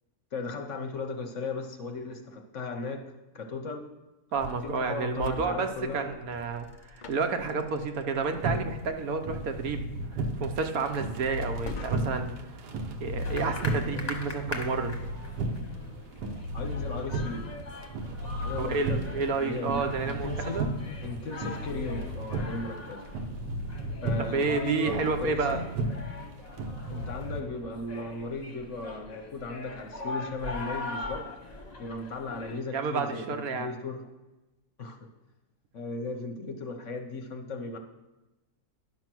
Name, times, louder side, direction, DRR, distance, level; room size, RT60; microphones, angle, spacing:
voice 1, 0.3-3.9 4.6-6.1 16.5-17.5 18.4-19.0 19.4-20.6 21.0-23.0 24.0-25.7 26.9-31.3 31.8-34.0 34.8-35.0 35.7-37.8, left 3 dB, 55° left, 6 dB, 1.0 m, -36 dB
sound 1, 4.3-12.4, left 3 dB, 75° left, 0.4 m, -46 dB
voice 2, 4.3-9.8 10.1-12.3 13.0-14.9 18.6-20.7 24.2-25.6 32.7-33.7, right 4 dB, 65° right, 6 dB, 1.2 m, -30 dB
sound 2, 8.3-27.4, right 1 dB, 90° right, 1.6 m, -34 dB
sound 3, 13.2-32.6, left 2 dB, 30° left, 1.0 m, -42 dB
10.5 x 6.3 x 6.0 m, 1.1 s
omnidirectional pair, 1.7 m